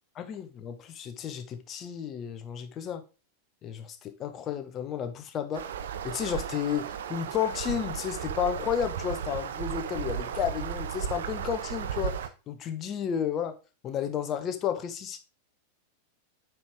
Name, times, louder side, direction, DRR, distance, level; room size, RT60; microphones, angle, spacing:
voice 1, 0.1-3.0 3.6-5.6 6.0-12.2 12.5-13.5 13.8-15.2, left 8 dB, 30° left, 1.0 m, -32 dB
sound 1, 5.5-12.3, right 8 dB, 60° right, 0.6 m, -35 dB
8.6 x 4.6 x 3.6 m
figure-of-eight pair, 90°, 0 cm